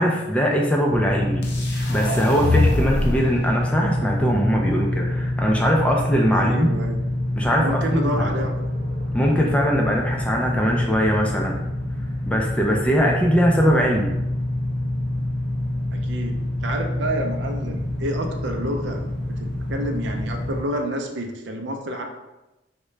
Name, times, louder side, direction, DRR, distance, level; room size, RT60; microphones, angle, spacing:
voice 1, 0.0-1.4 1.9-6.7 7.4-8.3 9.1-11.6 12.3-14.1, equal, 5° left, 0 dB, 0.3 m, -21 dB
sound 1, 0.9-20.6, left 1 dB, 50° right, 0.9 m, -26 dB
sound 2, 1.4-3.4, left 2 dB, 60° left, 0.6 m, -23 dB
voice 2, 6.3-7.0 7.6-8.5 15.9-19.0 19.4-22.0, right 1 dB, 65° right, 3 dB, 0.4 m, -29 dB
3.6 x 2.1 x 3.1 m, 0.99 s
head